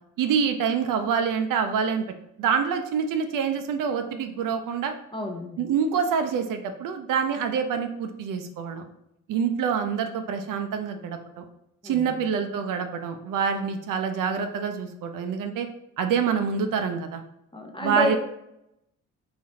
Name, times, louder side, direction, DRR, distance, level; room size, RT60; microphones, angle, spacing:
voice 1, 0.2-2.0 2.4-4.9 5.6-8.9 9.3-11.4 11.8-15.7 16.0-17.2 17.8-18.2, right 6 dB, 50° right, 7 dB, 0.5 m, -26 dB
voice 2, 5.1-5.7 11.8-12.3 17.5-18.2, left 1 dB, 15° left, 2 dB, 0.5 m, -30 dB
3.9 x 2.9 x 2.8 m, 0.81 s
hypercardioid pair, 40°, 41 cm